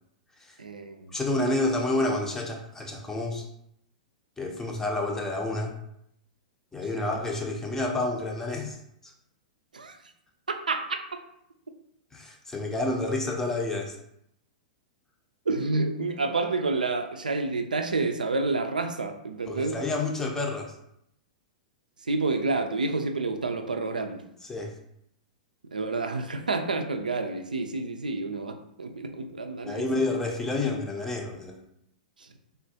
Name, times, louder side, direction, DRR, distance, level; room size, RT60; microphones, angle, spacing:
voice 1, 0.6-1.1 7.0-7.1 9.7-10.0 10.5-11.0 15.5-19.8 22.0-24.2 25.7-29.8 32.2-32.3, right 3 dB, 85° right, 6 dB, 0.3 m, -29 dB
voice 2, 1.1-3.4 4.4-5.7 6.7-8.8 12.1-14.0 19.5-20.7 24.5-24.7 29.6-31.6, left 2 dB, 10° left, 1 dB, 0.5 m, -29 dB
3.4 x 2.2 x 2.7 m, 0.75 s
figure-of-eight pair, 105°, 4 cm